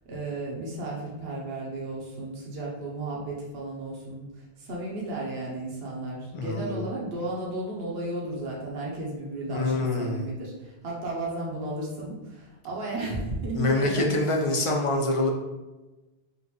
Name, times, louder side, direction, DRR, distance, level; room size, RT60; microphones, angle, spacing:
voice 1, 0.1-14.1, right 2 dB, 70° right, -3 dB, 1.0 m, -34 dB
voice 2, 6.3-6.8 9.5-10.2 13.6-15.3, left 2 dB, 35° left, 0 dB, 0.6 m, -25 dB
5.2 x 2.6 x 3.0 m, 1.1 s
omnidirectional pair, 1.1 m